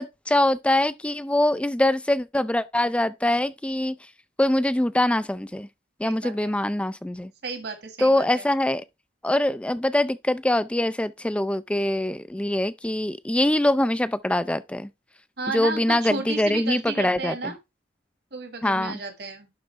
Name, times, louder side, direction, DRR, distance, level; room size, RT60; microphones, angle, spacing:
voice 1, 0.0-3.9 4.4-5.7 6.0-7.3 8.0-8.8 9.2-14.9 15.5-17.5 18.6-19.0, left 1 dB, 5° left, 0.3 m, -23 dB
voice 2, 6.0-6.5 7.4-8.4 15.4-17.6 18.3-19.5, right 3 dB, 60° right, 1.8 m, -33 dB
11.5 x 3.9 x 3.3 m
head